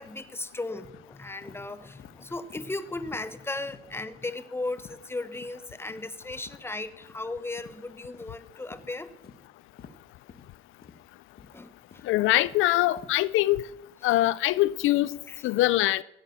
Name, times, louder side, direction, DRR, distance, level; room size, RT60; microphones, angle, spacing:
voice 1, 0.0-9.1 11.5-11.7 15.3-15.4, left 2 dB, 10° left, 1.1 m, -36 dB
sound 1, 0.8-1.0 1.4-1.6 2.0-2.2 2.5-2.7 3.1-3.3 3.7-3.8 4.2-4.4 4.8-5.0 5.3-5.5 5.9-6.1 6.4-6.6 7.0-7.2 7.6-7.7 8.1-8.4 8.7-8.9 9.2-9.4 9.8-9.9 10.3-10.5 10.8-11.0 11.4-11.6 11.9-12.7 13.0-13.1, left 6 dB, 50° left, 1.5 m, -50 dB
voice 2, 12.0-13.6 14.0-15.2 15.4-16.0, left 16 dB, 90° left, 0.5 m, -23 dB
16.0 x 9.0 x 7.1 m
cardioid pair, 90°, 20 cm